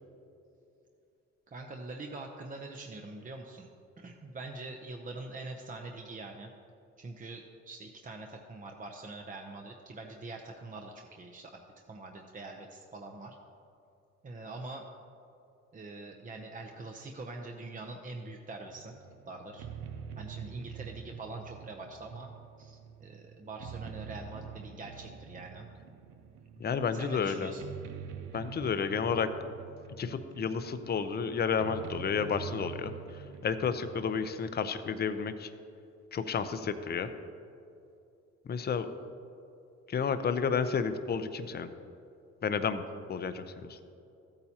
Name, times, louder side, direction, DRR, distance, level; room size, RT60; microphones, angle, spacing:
voice 1, 1.5-3.7 4.0-6.5 7.0-11.6 11.9-13.4 14.2-14.8 15.7-18.9 19.3-19.7 20.2-22.3 22.6-25.7 26.9-27.7, right 2 dB, 25° right, 2 dB, 0.7 m, -44 dB
sound 1, 18.7-34.3, right 7 dB, 90° right, 0.6 m, -46 dB
voice 2, 26.6-27.5 28.3-29.3 30.0-35.5 36.1-37.1 38.5-38.9 39.9-41.7 42.4-42.8 43.1-43.8, left 6 dB, 35° left, 10 dB, 0.6 m, -31 dB
14.0 x 8.7 x 2.9 m, 2.7 s
cardioid pair, 90°, 30 cm